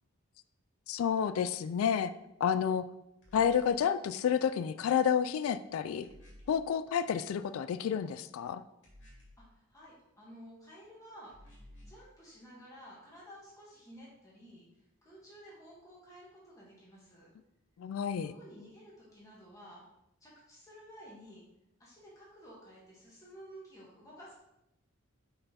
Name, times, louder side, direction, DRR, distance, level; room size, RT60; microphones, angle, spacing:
voice 1, 0.9-2.1 2.4-2.9 3.3-6.1 6.5-8.6 17.8-18.3, left 8 dB, 75° left, 13 dB, 0.3 m, -30 dB
sound 1, 3.2-3.8 6.0-6.6 8.8-9.5 11.3-12.0, left 1 dB, 55° left, 2.1 m, -55 dB
voice 2, 9.4-14.6 15.0-17.3 18.2-19.8 20.2-21.4 21.8-24.4, equal, 15° left, -6 dB, 1.5 m, -53 dB
5.4 x 4.4 x 4.2 m, 0.86 s
head